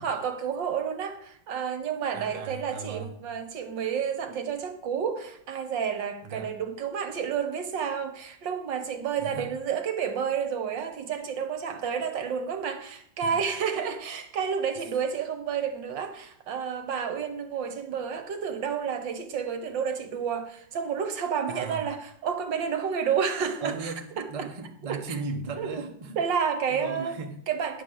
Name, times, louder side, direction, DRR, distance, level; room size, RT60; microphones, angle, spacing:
voice 1, 0.0-24.5 24.9-25.2 25.6-25.7 26.2-27.2 27.5-27.8, right 7 dB, 70° right, 1.7 m, -30 dB
voice 2, 2.1-3.1 6.2-6.5 9.2-9.5 13.2-13.4 21.5-21.8 23.6-26.2 26.7-27.3, right 4 dB, 25° right, 0.8 m, -37 dB
10.5 x 5.2 x 7.7 m
omnidirectional pair, 2.2 m